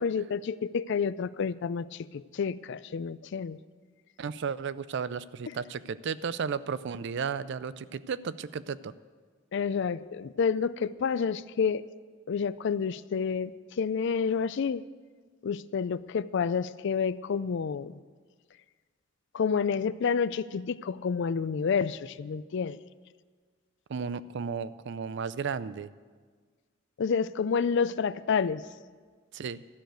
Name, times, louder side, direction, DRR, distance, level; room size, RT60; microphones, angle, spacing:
voice 1, 0.0-3.6 9.5-11.8 12.3-14.8 15.4-18.0 19.3-22.8 27.0-28.7, left 6 dB, 60° left, 17 dB, 0.4 m, -29 dB
voice 2, 4.2-8.9 23.9-25.9 29.3-29.6, right 6 dB, 60° right, 16 dB, 0.4 m, -34 dB
13.0 x 6.6 x 9.1 m, 1.5 s
head